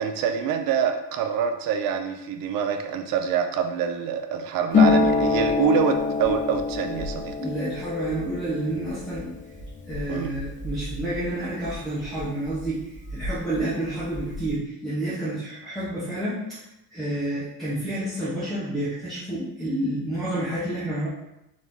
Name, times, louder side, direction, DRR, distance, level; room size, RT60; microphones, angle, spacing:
voice 1, 0.0-7.4 10.1-10.4, right 7 dB, 65° right, 5 dB, 0.5 m, -26 dB
Harp, 4.7-12.2 12.5-13.6 13.8-14.5, left 4 dB, 20° left, 0.5 m, -26 dB
voice 2, 7.4-9.3 9.9-16.6 16.9-21.1, right 1 dB, ahead, -11 dB, 0.8 m, -29 dB
4.0 x 3.1 x 3.6 m, 0.89 s
cardioid pair, 175°, 38 cm